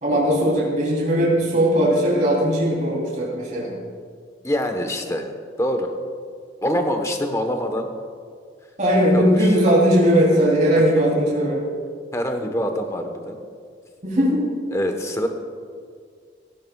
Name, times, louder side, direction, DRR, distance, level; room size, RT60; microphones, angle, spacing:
voice 1, 0.0-3.7 8.8-11.6 14.0-14.7, equal, 45° right, -4 dB, 3.3 m, -19 dB
voice 2, 4.4-5.3 5.6-5.9 6.6-7.9 9.1-9.5 12.1-13.4 14.7-15.3, equal, 15° left, 5 dB, 1.1 m, -25 dB
17.0 x 16.5 x 2.3 m, 2.1 s
head